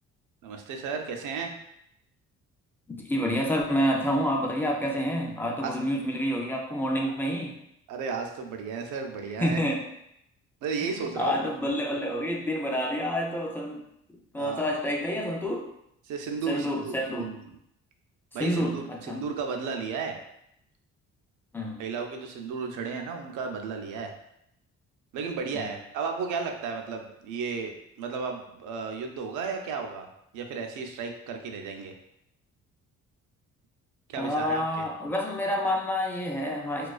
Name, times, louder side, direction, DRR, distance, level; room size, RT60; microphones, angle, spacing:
voice 1, 0.4-1.5 5.6-5.8 7.0-7.1 7.9-9.6 10.6-11.4 14.4-14.6 16.0-17.6 18.3-20.2 21.8-24.1 25.1-30.1 30.3-31.9 34.1-34.6, right 5 dB, 85° right, 4 dB, 0.4 m, -34 dB
voice 2, 3.0-7.6 9.4-9.8 10.8-13.8 14.3-15.7 16.5-17.3 18.4-19.2 21.5-21.8 25.5-25.6 34.2-36.9, equal, 5° left, 0 dB, 0.4 m, -28 dB
2.3 x 2.3 x 2.3 m, 0.77 s
cardioid pair, 90°, 30 cm